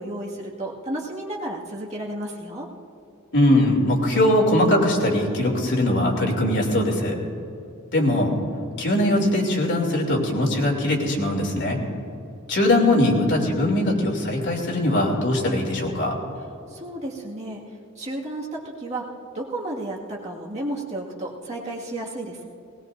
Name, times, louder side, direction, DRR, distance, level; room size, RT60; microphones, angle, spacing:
voice 1, 0.0-2.7 16.7-17.6 18.0-19.1 19.3-22.5, right 1 dB, 30° right, -4 dB, 2.0 m, -32 dB
voice 2, 3.3-7.2 7.9-8.3 8.8-11.8 12.5-16.1, left 1 dB, 55° left, 0 dB, 2.8 m, -21 dB
19.5 x 19.5 x 2.6 m, 2.7 s
head